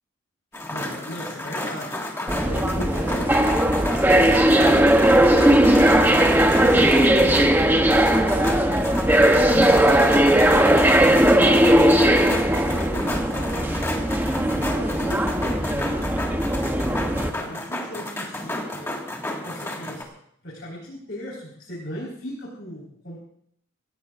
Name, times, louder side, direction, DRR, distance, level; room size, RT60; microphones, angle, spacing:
sound 1, 0.5-20.0, left 1 dB, 10° left, 1.8 m, -31 dB
voice 1, 0.7-2.0 2.4-3.7 4.0-5.1 5.5-8.8 11.1-14.1 14.6-16.7 17.2-19.0 19.4-20.0 20.4-23.2, equal, 55° left, -6 dB, 4.5 m, -37 dB
sound 2, 2.3-17.3, right 1 dB, 10° right, 0.9 m, -18 dB
26.5 x 17.0 x 2.6 m, 0.70 s
head